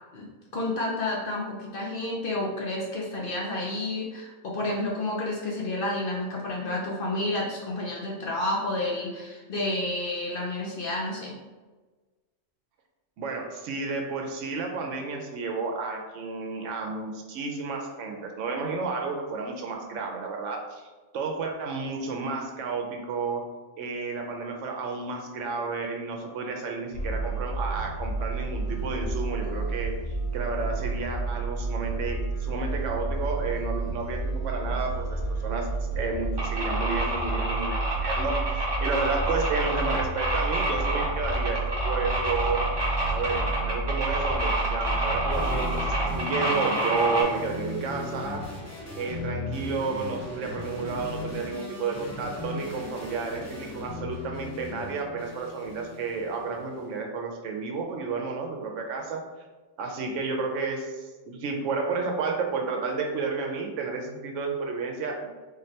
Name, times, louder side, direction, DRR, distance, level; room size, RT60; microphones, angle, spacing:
voice 1, 0.5-11.3, left 2 dB, 55° left, -3 dB, 0.7 m, -30 dB
voice 2, 13.2-20.9 21.1-23.4 23.8-29.9 30.3-42.7 43.1-48.4 48.9-59.2 59.8-65.3, right 4 dB, 75° right, 2 dB, 0.9 m, -31 dB
sound 1, 26.9-46.2, right 3 dB, 80° left, 1.0 m, -31 dB
sound 2, 36.4-47.2, right 1 dB, 20° right, 0.9 m, -29 dB
sound 3, 45.3-56.8, left 2 dB, 20° left, 0.5 m, -38 dB
3.8 x 3.2 x 2.8 m, 1.3 s
omnidirectional pair, 1.3 m